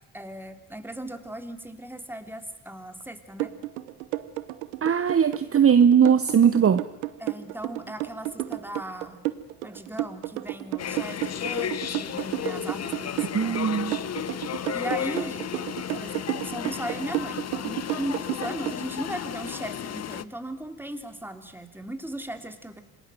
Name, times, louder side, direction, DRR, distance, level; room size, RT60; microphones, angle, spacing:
voice 1, 0.1-3.5 7.2-9.2 9.6-13.6 14.7-15.5 15.9-22.8, right 1 dB, 5° right, 7 dB, 3.3 m, -37 dB
sound 1, 3.4-18.8, right 18 dB, 85° right, 1.2 m, -31 dB
voice 2, 4.8-6.8 13.3-14.0, right 7 dB, 35° right, 12 dB, 1.1 m, -19 dB
sound 2, 10.8-20.2, left 9 dB, 40° left, 0.9 m, -33 dB
27.0 x 19.0 x 7.9 m, 0.96 s
hypercardioid pair, 60°, 41 cm